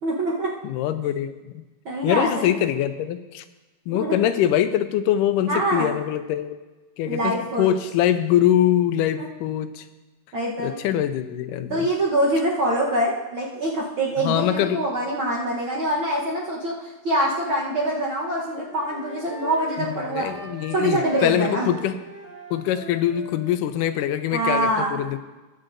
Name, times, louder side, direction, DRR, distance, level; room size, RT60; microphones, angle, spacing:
voice 1, 0.0-0.5 1.8-2.6 3.9-4.2 5.5-5.9 7.0-7.7 9.2-9.3 10.3-10.7 11.7-20.3 20.7-21.7 24.3-25.0, right 1 dB, 60° right, -5 dB, 1.3 m, -24 dB
voice 2, 0.6-1.6 2.0-3.4 3.9-6.6 7.0-9.9 10.6-11.9 14.2-14.8 19.8-22.0 22.5-25.2, left 11 dB, 90° left, 11 dB, 2.2 m, -23 dB
Wind instrument woodwind instrument, 17.9-23.5, equal, 25° left, 2.0 m, -40 dB
21.0 x 7.5 x 2.6 m, 1.2 s
omnidirectional pair, 3.7 m